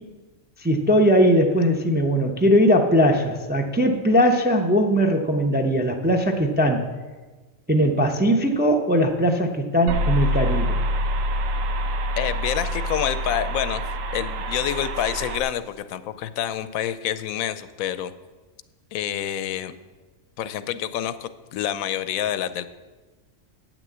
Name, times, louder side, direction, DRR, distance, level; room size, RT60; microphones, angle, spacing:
voice 1, 0.6-6.8 7.7-10.8, equal, 15° right, 2 dB, 0.4 m, -20 dB
sound 1, 9.9-15.4, equal, 75° right, 1.0 m, -26 dB
voice 2, 12.2-13.8 14.1-18.1 18.9-19.8 20.4-22.7, left 10 dB, 85° left, 13 dB, 1.0 m, -27 dB
8.7 x 6.2 x 7.9 m, 1.3 s
omnidirectional pair, 1.4 m